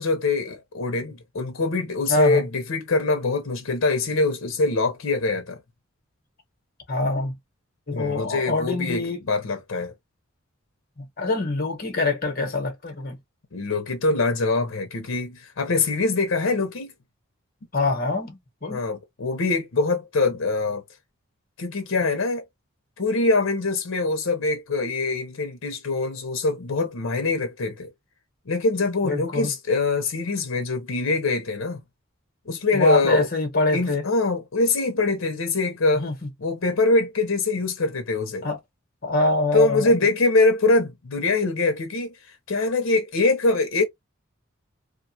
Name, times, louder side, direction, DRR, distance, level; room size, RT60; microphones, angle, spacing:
voice 1, 0.0-5.6 7.9-9.9 13.5-16.9 18.7-20.8 21.6-22.4 23.0-27.9 28.5-31.8 32.5-33.3 33.7-36.1 36.4-38.5 39.5-43.8, left 3 dB, 75° left, 0.7 m, -23 dB
voice 2, 2.1-2.4 6.9-7.3 7.9-9.2 11.0-13.2 17.7-18.8 29.0-29.5 32.7-34.0 36.0-36.1 38.4-38.6 39.0-39.9, left 2 dB, 45° left, 1.0 m, -24 dB
2.5 x 2.3 x 2.7 m
head